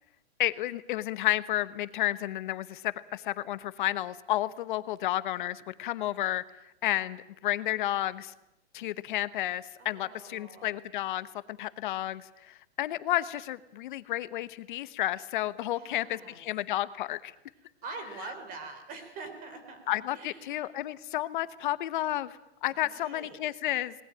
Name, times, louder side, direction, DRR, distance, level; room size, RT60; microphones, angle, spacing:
voice 1, 0.4-6.4 6.8-8.3 8.7-17.3 19.9-23.9, left 14 dB, 45° left, 15 dB, 1.0 m, -31 dB
voice 2, 9.8-10.7 15.7-16.4 17.8-20.7 22.7-23.4, right 3 dB, 25° right, 7 dB, 4.2 m, -44 dB
20.5 x 19.5 x 8.8 m, 0.83 s
hypercardioid pair, 155°, 33 cm